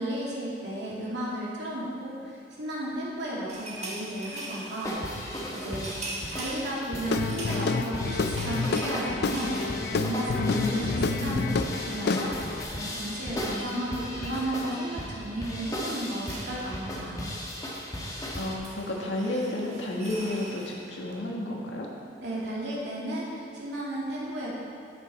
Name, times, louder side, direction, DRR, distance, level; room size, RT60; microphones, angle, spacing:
voice 1, 0.0-5.9 6.3-11.4 11.8-17.2 22.2-24.5, right 1 dB, 70° right, -6 dB, 2.5 m, -34 dB
sound 1, 3.5-11.4 11.6-11.8 12.1-21.1, right 2 dB, 40° right, 1.4 m, -44 dB
sound 2, 4.8-18.6, equal, 20° left, 1.2 m, -36 dB
Guitar / Drum, 7.1-12.6, left 4 dB, 60° left, 0.4 m, -29 dB
voice 2, 10.4-11.5 18.3-21.9, left 1 dB, 85° left, -1 dB, 1.6 m, -31 dB
9.8 x 8.2 x 4.3 m, 2.3 s
head